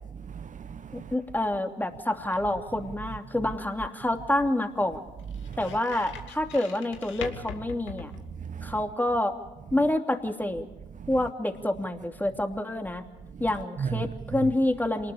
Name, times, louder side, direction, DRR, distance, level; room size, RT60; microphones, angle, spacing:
voice 1, 0.2-1.1 5.3-5.6 8.3-8.8 10.9-11.1 13.3-13.5 13.8-14.5, right 7 dB, 35° right, 0.8 m, -36 dB
voice 2, 0.9-5.0 5.6-8.1 8.6-9.3 9.7-10.7 11.1-13.0 13.4-15.1, left 1 dB, 10° left, 2.9 m, -28 dB
sound 1, 2.6-8.8, left 7 dB, 65° left, 2.3 m, -44 dB
27.0 x 20.0 x 5.0 m
hypercardioid pair, 60°, 21 cm